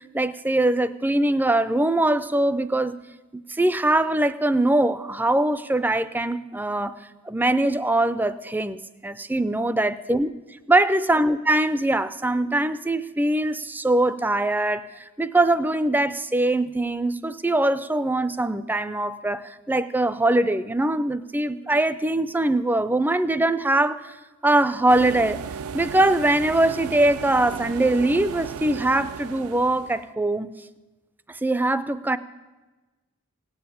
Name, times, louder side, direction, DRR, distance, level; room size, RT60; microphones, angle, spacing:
voice 1, 0.0-3.0 3.3-7.0 7.3-10.3 10.7-24.1 24.4-25.4 25.7-30.5 31.3-32.2, right 1 dB, 10° right, 14 dB, 0.4 m, -22 dB
sound 1, 24.9-30.1, right 6 dB, 85° right, 0.4 m, -35 dB
17.5 x 7.9 x 8.4 m, 1.2 s
head